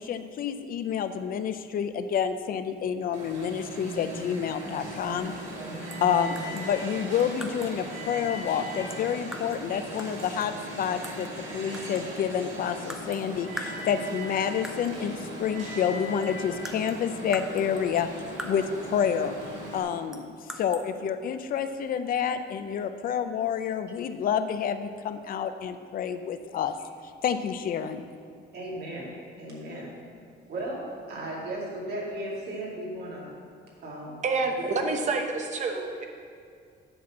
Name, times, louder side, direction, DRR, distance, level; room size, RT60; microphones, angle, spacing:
voice 1, 0.0-5.3 6.0-18.1 18.4-19.3 19.7-26.7 27.2-28.0, left 8 dB, 50° left, 10 dB, 0.5 m, -29 dB
Alarm, 3.1-19.8, right 1 dB, 85° right, 2.7 m, -38 dB
sound 1, 5.9-6.1 6.4-7.8 8.9-9.7 10.0-11.4 11.7-12.3 12.9-13.3 13.6-14.3 14.6-15.0 15.9-16.0 16.2-18.9 20.1-20.9, equal, 5° right, 0.5 m, -42 dB
voice 2, 28.5-29.1 29.4-29.9 30.5-33.3 33.8-34.2 34.6-34.7, right 1 dB, 55° right, -4 dB, 2.4 m, -36 dB
voice 3, 34.2-36.1, right 3 dB, 40° right, 3 dB, 0.9 m, -28 dB
10.0 x 4.3 x 7.2 m, 2.2 s
cardioid pair, 175°, 19 cm